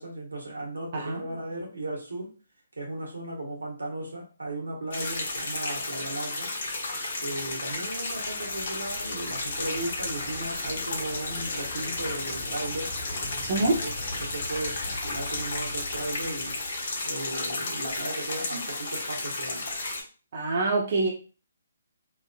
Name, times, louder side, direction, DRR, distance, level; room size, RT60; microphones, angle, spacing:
voice 1, 0.0-2.3 2.8-6.5 7.2-16.6 17.0-19.6, right 1 dB, 90° right, -1 dB, 1.2 m, -36 dB
voice 2, 0.9-1.2 13.5-13.8 18.5-18.6 20.3-21.1, right 3 dB, 50° right, -1 dB, 0.7 m, -25 dB
sound 1, 4.9-20.0, left 2 dB, 55° left, 1.0 m, -33 dB
sound 2, 7.5-17.4, left 1 dB, 30° left, 1.5 m, -43 dB
3.1 x 2.5 x 2.3 m, 0.36 s
hypercardioid pair, 145°, 0 cm